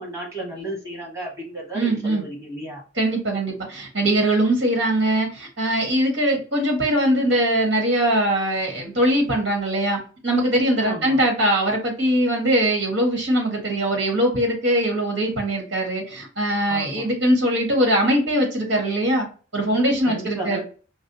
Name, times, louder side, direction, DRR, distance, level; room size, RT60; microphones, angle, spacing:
voice 1, 0.0-2.8 10.8-11.3 16.7-17.1 20.0-20.6, right 1 dB, 15° right, -2 dB, 1.3 m, -33 dB
voice 2, 1.7-2.2 2.9-19.3 19.5-20.6, right 1 dB, 70° right, 1 dB, 1.6 m, -21 dB
4.7 x 2.1 x 2.7 m, 0.37 s
head